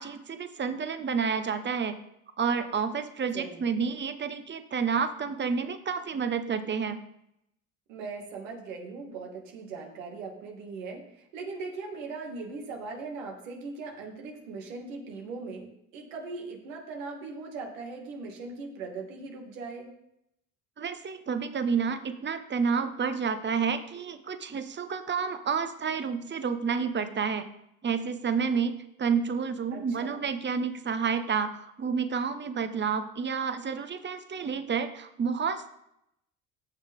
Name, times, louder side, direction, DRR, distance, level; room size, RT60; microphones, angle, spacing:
voice 1, 0.0-2.0 2.4-7.0 20.8-27.5 27.8-35.7, right 6 dB, 30° right, 9 dB, 1.2 m, -30 dB
voice 2, 3.3-3.7 7.9-19.9 29.7-30.3, right 4 dB, 85° right, 1 dB, 2.5 m, -39 dB
15.0 x 6.4 x 3.7 m, 0.79 s
hypercardioid pair, 70°, 37 cm